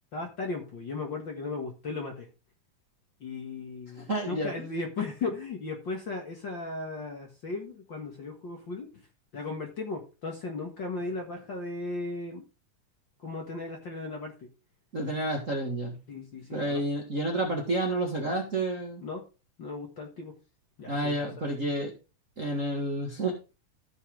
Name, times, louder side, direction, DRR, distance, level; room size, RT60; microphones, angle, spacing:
voice 1, 0.1-2.3 3.2-9.0 9.3-12.4 13.2-14.5 16.1-16.8 19.0-19.2 19.6-20.3 20.8-21.1, left 3 dB, 45° left, 2 dB, 2.0 m, -36 dB
voice 2, 4.1-4.5 14.9-16.0 16.5-19.0 20.9-21.9 22.4-23.4, right 1 dB, 30° right, 0 dB, 1.7 m, -30 dB
15.0 x 5.6 x 3.8 m, 0.30 s
omnidirectional pair, 3.6 m